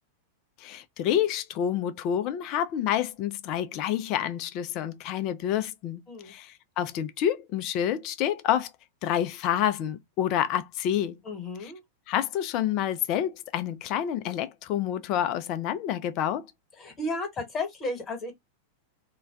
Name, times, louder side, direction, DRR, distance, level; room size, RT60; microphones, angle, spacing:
voice 1, 0.6-8.7 9.0-11.2 12.1-16.5, left 10 dB, 40° left, 0.4 m, -28 dB
voice 2, 11.2-11.8 16.8-18.3, left 2 dB, 25° left, 1.2 m, -33 dB
2.3 x 2.2 x 3.4 m
figure-of-eight pair, 95°, 0 cm